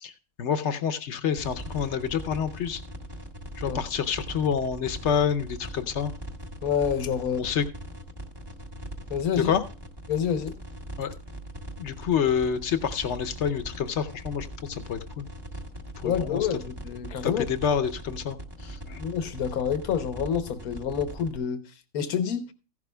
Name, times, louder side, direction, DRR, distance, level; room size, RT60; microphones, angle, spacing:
voice 1, 0.4-2.8 3.6-6.1 7.4-7.6 9.4-9.6 11.0-11.1 11.8-15.3 16.0-16.5 17.2-18.4 18.6-19.0, left 7 dB, 60° left, 0.9 m, -28 dB
sound 1, 1.4-21.4, equal, 20° right, 0.9 m, -40 dB
voice 2, 6.6-7.5 9.1-9.5 10.1-10.6 16.0-17.5 19.0-21.6 21.9-22.5, left 7 dB, 85° left, 1.4 m, -28 dB
15.0 x 11.0 x 2.2 m
omnidirectional pair, 1.5 m